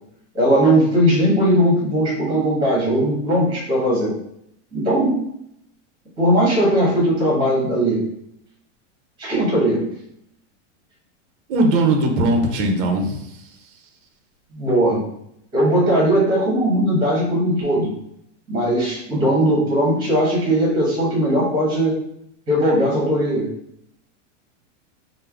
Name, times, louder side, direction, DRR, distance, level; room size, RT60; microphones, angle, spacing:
voice 1, 0.3-4.1 4.7-5.2 6.2-8.0 9.2-9.8 14.5-15.0 15.5-17.9 18.5-21.9 22.5-23.5, right 1 dB, 15° right, -5 dB, 1.2 m, -18 dB
voice 2, 11.5-13.4, right 2 dB, 45° right, 3 dB, 0.6 m, -19 dB
3.3 x 2.0 x 3.5 m, 0.74 s
supercardioid pair, 170°, 37 cm